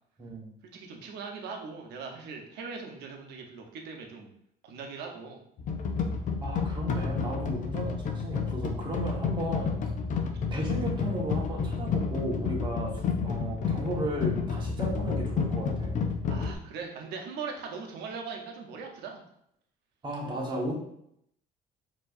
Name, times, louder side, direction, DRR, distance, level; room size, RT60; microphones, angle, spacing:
voice 1, 0.2-0.5 6.4-9.8 10.5-16.0 20.0-20.7, right 1 dB, 30° right, -2 dB, 1.1 m, -35 dB
voice 2, 0.7-4.3 4.6-5.4 16.3-19.2, right 5 dB, 85° right, 2 dB, 0.7 m, -40 dB
sound 1, 5.6-16.5, left 5 dB, 50° left, 0.5 m, -30 dB
4.5 x 2.9 x 2.5 m, 0.73 s
cardioid pair, 110°, 17 cm